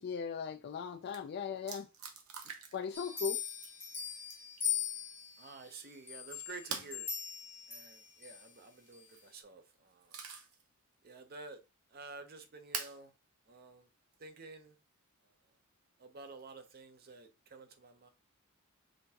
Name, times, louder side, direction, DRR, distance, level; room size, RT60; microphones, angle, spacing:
voice 1, 0.0-1.9 2.7-3.4, left 6 dB, 50° left, 0.3 m, -38 dB
sound 1, 0.7-0.8 1.1-1.2 1.7-2.9 3.2-3.8 4.3-4.6 6.7-7.0 8.9-9.3 9.7-10.6 11.1-11.2 12.7-13.0 14.1-14.2 16.3-16.7, right 6 dB, 80° right, 0.8 m, -44 dB
sound 2, 2.9-5.5 6.1-8.4 8.9-9.0, left 8 dB, 10° left, 0.8 m, -40 dB
voice 2, 5.4-7.1 7.7-10.2 11.0-11.6 11.9-13.1 13.5-13.9 14.2-14.8 16.0-18.1, right 3 dB, 45° right, 0.7 m, -51 dB
5.1 x 3.4 x 2.8 m
head